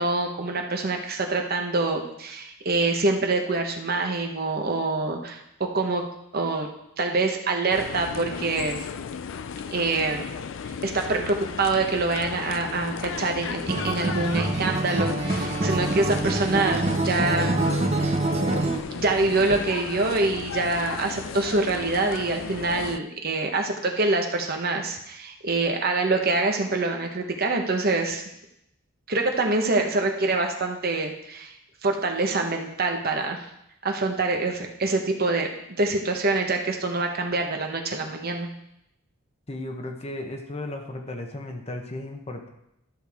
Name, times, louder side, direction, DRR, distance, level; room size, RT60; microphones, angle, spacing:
voice 1, 0.0-6.0 6.3-6.7 7.0-8.8 9.7-10.3 10.8-17.6 18.0-18.2 18.6-28.2 29.1-31.5 31.8-33.4 33.8-38.5, right 3 dB, 45° right, 3 dB, 1.0 m, -25 dB
sound 1, 7.7-23.0, left 6 dB, 60° left, 0.4 m, -35 dB
Acoustic guitar, 13.7-18.8, right 2 dB, 30° right, 0.6 m, -25 dB
voice 2, 39.5-42.5, left 1 dB, 30° left, 4 dB, 0.9 m, -35 dB
12.5 x 6.5 x 3.5 m, 0.79 s
head